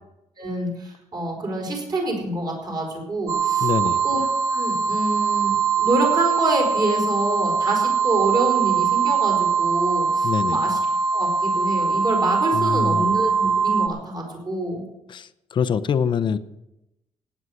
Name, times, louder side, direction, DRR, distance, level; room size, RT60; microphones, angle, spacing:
voice 1, 0.4-3.7 4.0-10.8 11.1-14.8, right 2 dB, 35° right, 1 dB, 4.7 m, -26 dB
sound 1, 3.3-13.9, right 6 dB, 55° right, 1.4 m, -22 dB
voice 2, 3.6-4.0 10.2-10.6 12.5-13.1 15.1-16.4, left 7 dB, 40° left, 13 dB, 0.7 m, -24 dB
17.5 x 9.7 x 6.5 m, 0.91 s
cardioid pair, 160°, 12 cm